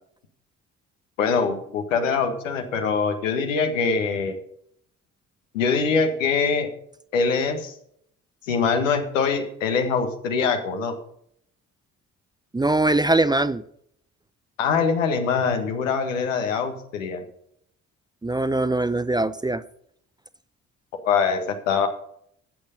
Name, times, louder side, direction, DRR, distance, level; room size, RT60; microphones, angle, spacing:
voice 1, 1.2-4.4 5.5-6.7 7.1-7.8 8.5-10.9 14.6-17.2 21.0-21.9, left 5 dB, 75° left, 5 dB, 1.7 m, -23 dB
voice 2, 12.5-13.6 18.2-19.6, right 2 dB, 10° right, 14 dB, 0.7 m, -22 dB
14.0 x 8.7 x 5.4 m, 0.68 s
figure-of-eight pair, 40°, 39 cm